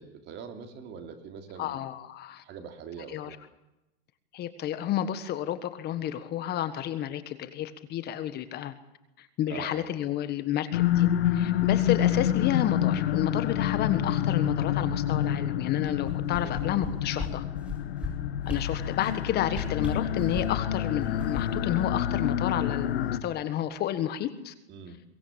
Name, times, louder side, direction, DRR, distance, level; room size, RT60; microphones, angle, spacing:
voice 1, 0.0-1.9 2.4-3.4 9.5-9.9 16.4-16.7 24.7-25.0, right 6 dB, 35° right, 6 dB, 3.5 m, -43 dB
voice 2, 1.6-2.4 3.1-3.3 4.3-8.7 9.2-17.4 18.4-24.5, left 11 dB, 30° left, 12 dB, 1.6 m, -31 dB
sound 1, 10.7-23.2, left 10 dB, 80° left, 1.7 m, -28 dB
sound 2, 15.8-16.9 17.2-17.3 17.6-18.1 18.4-18.6 19.0-19.2 19.5-20.6 21.0-22.6 22.9-23.0, left 3 dB, 5° right, 7.9 m, -36 dB
23.0 x 18.0 x 8.8 m, 0.92 s
supercardioid pair, 135°, 31 cm